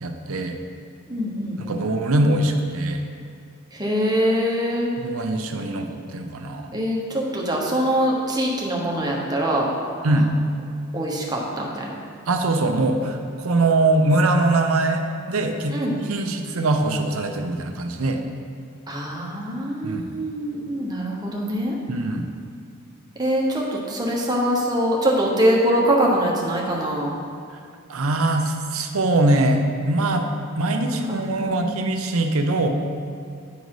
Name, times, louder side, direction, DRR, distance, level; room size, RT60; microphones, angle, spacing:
voice 1, 0.0-0.6 1.6-3.0 5.0-6.7 10.0-10.3 12.3-18.2 19.8-20.0 21.9-22.3 27.9-30.3 30.5-32.7, right 2 dB, 70° right, 5 dB, 0.7 m, -22 dB
voice 2, 1.1-1.9 3.7-4.9 6.7-9.7 10.9-11.9 15.7-16.0 18.9-21.8 23.2-27.2 30.9-31.8, equal, 20° right, -3 dB, 1.1 m, -23 dB
10.5 x 4.0 x 4.8 m, 2.4 s
head